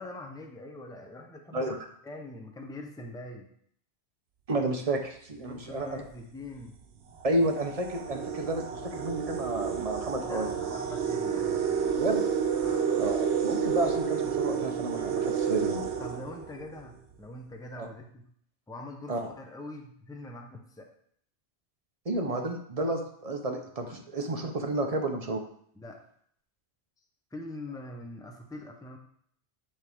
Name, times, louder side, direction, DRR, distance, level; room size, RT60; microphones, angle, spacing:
voice 1, 0.0-1.8 2.0-3.5 5.4-6.7 10.2-12.0 12.6-13.1 16.0-18.3 18.7-20.9 25.8-26.0 27.3-29.0, left 2 dB, 5° left, 2 dB, 0.6 m, -43 dB
voice 2, 4.5-6.0 7.2-10.5 11.9-12.3 13.0-15.9 17.8-17.9 19.1-19.3 22.0-25.4, right 2 dB, 40° right, 4 dB, 0.8 m, -31 dB
sound 1, 5.5-5.8 6.6-6.7 7.1-16.9, right 7 dB, 90° right, 1.0 m, -30 dB
9.7 x 3.8 x 3.5 m, 0.64 s
omnidirectional pair, 1.1 m